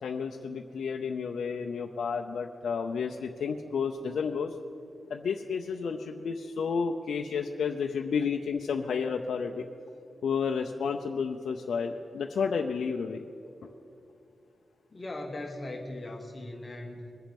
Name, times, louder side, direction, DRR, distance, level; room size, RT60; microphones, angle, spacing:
voice 1, 0.0-4.5 5.1-9.6 10.2-13.2 13.6-13.7, left 6 dB, 80° left, 2 dB, 0.6 m, -31 dB
voice 2, 14.9-17.1, left 1 dB, 30° left, 1 dB, 1.2 m, -39 dB
22.5 x 7.5 x 5.3 m, 2.7 s
wide cardioid pair, 105°, 0 cm